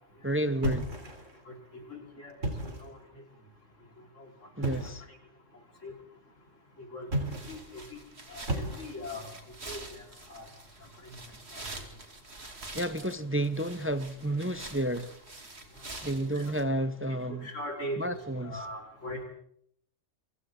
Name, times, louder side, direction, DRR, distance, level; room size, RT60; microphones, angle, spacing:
voice 1, 0.2-0.9 4.6-5.0 12.7-15.1 16.0-17.5 18.0-18.7, right 1 dB, 10° right, 0.7 m, -31 dB
sound 1, 0.6-1.4 2.3-3.0 4.6-5.1 7.0-7.7 8.5-9.2, right 1 dB, 75° right, 3.7 m, -33 dB
voice 2, 1.5-2.3 2.8-3.0 5.8-5.9 6.8-7.1 7.5-8.0 8.3-9.3 9.6-10.0 10.3-10.5 11.1-11.2 16.3-16.4 17.1-18.1 18.4-19.2, equal, 75° left, 4.8 m, -40 dB
sound 2, 7.3-16.6, right 2 dB, 55° right, 2.9 m, -46 dB
29.5 x 24.5 x 3.8 m
omnidirectional pair, 1.3 m